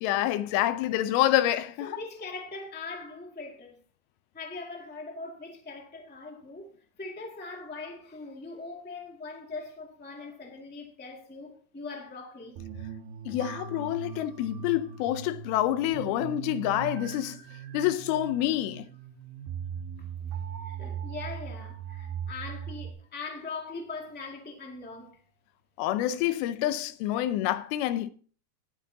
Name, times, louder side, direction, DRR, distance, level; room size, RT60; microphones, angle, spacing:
voice 1, 0.0-1.9 13.3-17.4 17.7-18.9 25.8-28.1, left 13 dB, 80° left, 2.5 m, -27 dB
voice 2, 1.8-3.8 4.3-6.7 7.0-12.6 20.6-25.2, left 3 dB, 15° left, 0.3 m, -41 dB
sound 1, 12.6-22.9, right 8 dB, 75° right, 3.0 m, -39 dB
18.5 x 8.6 x 2.8 m
omnidirectional pair, 4.5 m